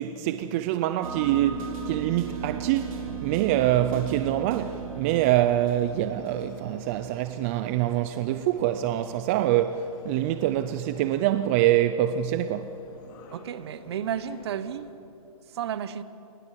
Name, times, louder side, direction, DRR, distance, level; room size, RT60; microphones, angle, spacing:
voice 1, 0.0-12.7, right 12 dB, 20° right, 0.4 m, -25 dB
sound 1, 1.0-7.6, right 8 dB, 65° right, 5.0 m, -37 dB
Subway metro underground, 2.2-14.9, left 3 dB, 35° left, 3.0 m, -49 dB
voice 2, 13.3-14.9 15.5-16.0, right 9 dB, 45° right, 1.0 m, -32 dB
27.5 x 19.5 x 7.5 m
hypercardioid pair, 155°, 19 cm